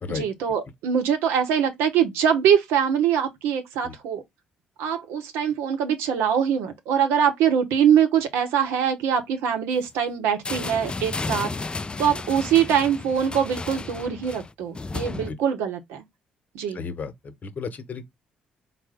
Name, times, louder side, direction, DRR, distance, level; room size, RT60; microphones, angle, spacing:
voice 1, 0.1-4.2 4.8-11.5 12.0-16.0 16.5-16.8, right 8 dB, 75° right, 0.9 m, -23 dB
sound 1, 10.4-15.3, left 3 dB, 25° left, 0.3 m, -33 dB
voice 2, 16.7-18.0, left 5 dB, 45° left, 0.9 m, -34 dB
4.2 x 2.1 x 3.5 m
hypercardioid pair, 50°, 4 cm